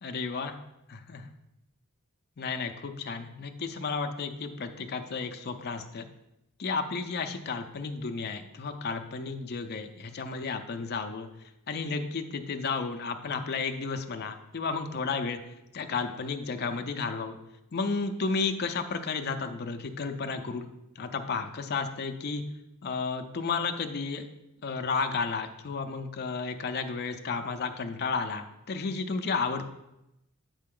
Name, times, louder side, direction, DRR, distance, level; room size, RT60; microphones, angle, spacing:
voice 1, 0.0-0.6 0.9-1.3 2.4-6.1 6.6-15.4 15.7-17.4 17.7-20.7 21.0-22.4 22.8-24.3 24.6-29.6, left 4 dB, 45° left, 6 dB, 0.5 m, -32 dB
7.5 x 5.2 x 3.7 m, 0.89 s
head